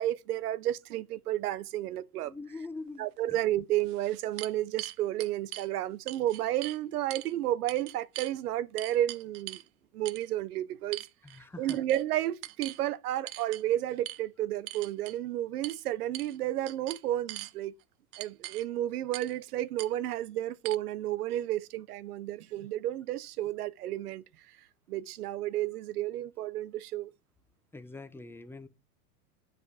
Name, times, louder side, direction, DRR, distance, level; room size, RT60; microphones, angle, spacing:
voice 1, 0.0-2.3 3.0-9.6 9.9-11.1 11.6-17.7 18.2-24.2 24.9-27.1, right 13 dB, 90° right, 0.7 m, -32 dB
voice 2, 2.2-3.4 11.2-11.8 27.7-28.7, left 3 dB, 5° left, 0.5 m, -43 dB
sound 1, 3.2-3.3 3.8-5.7 6.1-6.8 7.1-7.3 7.7-8.3 8.8-9.7 10.1-10.3 10.9-11.4 11.7-12.0 12.4-12.8 13.3-13.6 14.1-14.2 14.7-15.2 15.6-15.8 16.1-16.4 16.7-17.5 18.1-18.7 19.1-19.4 19.8-19.9 20.7-20.8, right 17 dB, 55° right, 0.6 m, -41 dB
7.6 x 5.0 x 4.9 m
supercardioid pair, 120°, 44 cm